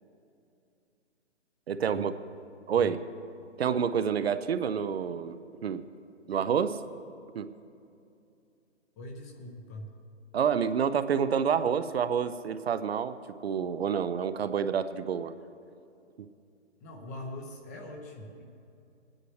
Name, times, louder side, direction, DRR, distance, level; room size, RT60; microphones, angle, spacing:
voice 1, 1.7-2.1 2.7-3.0 3.6-5.9 6.3-6.8 7.3-7.5 10.3-13.1 13.4-15.3 16.2-16.3, right 7 dB, 60° right, 12 dB, 0.6 m, -28 dB
voice 2, 9.0-9.9 16.8-18.4, left 1 dB, 15° left, 2 dB, 0.6 m, -42 dB
20.0 x 9.9 x 3.2 m, 2.6 s
hypercardioid pair, 150°, 35 cm